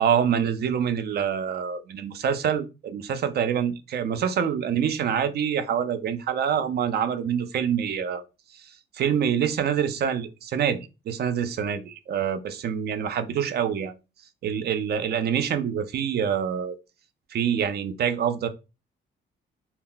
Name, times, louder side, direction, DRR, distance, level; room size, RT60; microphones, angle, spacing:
voice 1, 0.0-8.2 8.5-13.9 14.4-16.8 17.3-18.5, right 8 dB, 55° right, 9 dB, 0.4 m, -26 dB
2.1 x 2.0 x 3.7 m, 0.28 s
cardioid pair, 90°, 20 cm